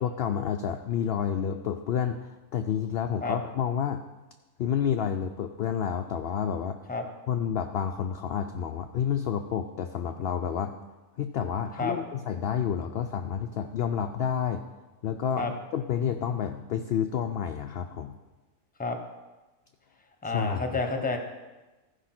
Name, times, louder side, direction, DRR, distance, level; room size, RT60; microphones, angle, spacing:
voice 1, 0.0-4.0 4.6-6.8 7.3-10.7 11.2-14.6 15.0-18.1 20.2-20.8, left 8 dB, 65° left, 6 dB, 0.6 m, -29 dB
voice 2, 20.2-21.2, left 3 dB, 5° left, 5 dB, 0.8 m, -29 dB
14.5 x 4.9 x 5.9 m, 1.2 s
omnidirectional pair, 1.5 m